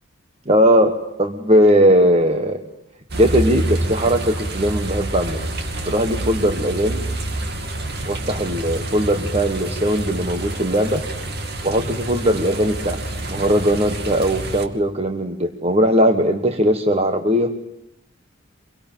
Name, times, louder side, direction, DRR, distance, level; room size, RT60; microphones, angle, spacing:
voice 1, 0.5-2.6 3.2-5.5 5.8-7.0 8.1-11.0 11.6-13.0 13.3-17.6, equal, 30° right, 6 dB, 1.4 m, -19 dB
sound 1, 3.1-14.7, right 1 dB, 50° right, 2.5 m, -27 dB
25.0 x 23.0 x 9.1 m, 0.80 s
head